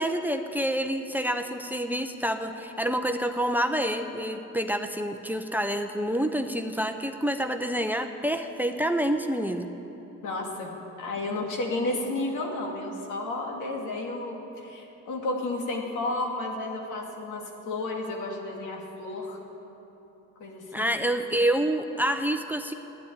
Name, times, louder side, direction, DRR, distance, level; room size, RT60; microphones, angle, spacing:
voice 1, 0.0-9.7 20.7-22.7, right 1 dB, 5° right, 7 dB, 0.7 m, -27 dB
voice 2, 10.2-10.7 11.0-19.4 20.4-21.0, left 2 dB, 80° left, 0 dB, 2.4 m, -32 dB
12.0 x 10.0 x 9.6 m, 3.0 s
cardioid pair, 90°, 30 cm